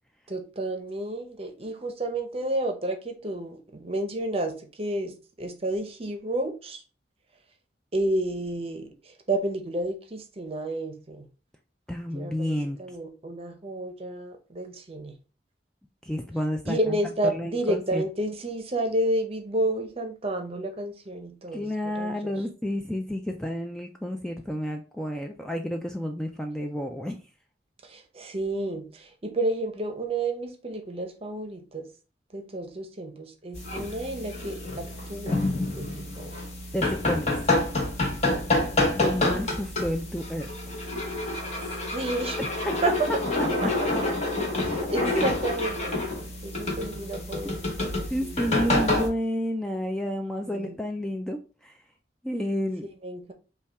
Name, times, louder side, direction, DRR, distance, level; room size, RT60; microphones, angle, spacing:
voice 1, 0.3-6.8 7.9-11.3 12.1-15.2 16.7-22.4 27.8-31.9 32.3-35.4 35.8-36.3 38.3-38.5 41.9-42.4 42.8-43.9 44.6-46.0 46.4-48.3 50.5-50.8 53.0-53.3, right 1 dB, 35° right, 0.7 m, -31 dB
voice 2, 11.9-12.8 16.0-16.8 17.3-18.0 21.5-27.2 36.7-37.4 38.9-40.5 42.4-42.5 43.9-44.0 45.1-45.2 48.1-51.7 52.2-52.9, equal, 5° left, 0.3 m, -30 dB
sound 1, 33.5-49.1, left 2 dB, 40° left, 1.1 m, -28 dB
5.4 x 2.3 x 3.4 m
head